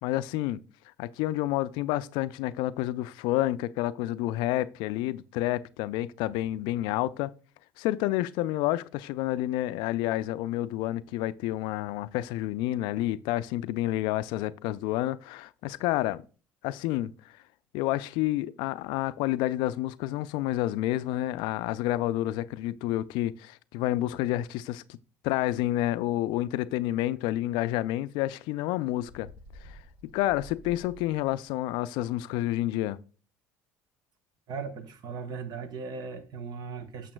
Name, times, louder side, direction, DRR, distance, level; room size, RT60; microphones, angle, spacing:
voice 1, 0.0-0.6 1.0-7.3 7.8-16.2 16.6-17.1 17.7-25.0 25.2-29.3 29.6-29.8 30.1-33.0, left 15 dB, 70° left, 0.3 m, -29 dB
Bird, 29.0-31.5, equal, 90° right, 1.6 m, -50 dB
voice 2, 34.5-37.1, right 5 dB, 60° right, 1.1 m, -38 dB
8.7 x 6.6 x 2.2 m
hypercardioid pair, 70°, 8 cm